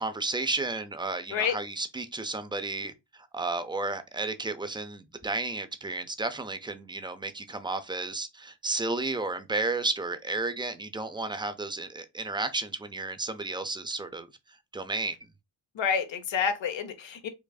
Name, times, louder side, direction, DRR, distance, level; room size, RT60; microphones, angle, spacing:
voice 1, 0.0-14.3 14.7-15.2, right 3 dB, 10° right, 0.5 m, -32 dB
voice 2, 15.8-17.3, left 6 dB, 70° left, 0.9 m, -28 dB
4.9 x 2.5 x 2.3 m
cardioid pair, 80°, 46 cm